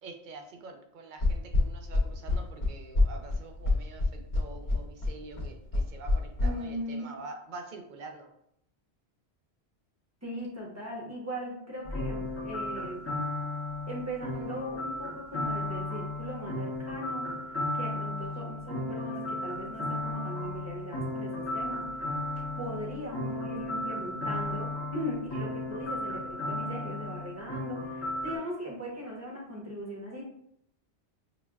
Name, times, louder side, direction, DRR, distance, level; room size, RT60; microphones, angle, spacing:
voice 1, 0.0-8.3, right 3 dB, 55° right, 4 dB, 0.6 m, -46 dB
sound 1, 1.2-6.5, left 2 dB, 75° left, 1.0 m, -26 dB
voice 2, 6.4-7.2 10.2-13.1 13.9-17.3 17.7-22.1 22.6-30.2, equal, 15° right, -3 dB, 0.8 m, -39 dB
sound 2, 11.8-28.4, left 2 dB, 15° left, 0.7 m, -35 dB
5.7 x 2.1 x 2.3 m, 0.73 s
omnidirectional pair, 1.1 m